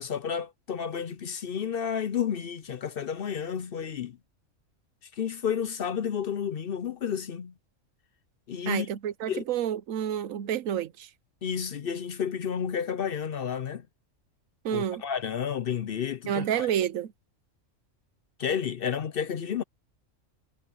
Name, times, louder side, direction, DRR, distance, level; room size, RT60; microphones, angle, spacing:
voice 1, 0.0-4.2 5.1-7.5 8.5-8.9 9.3-9.4 11.4-13.9 14.7-16.7 18.4-19.6, left 8 dB, 55° left, 0.7 m, -31 dB
voice 2, 8.7-11.1 14.6-15.0 16.3-17.1, right 10 dB, 85° right, 1.1 m, -29 dB
omnidirectional pair, 1.3 m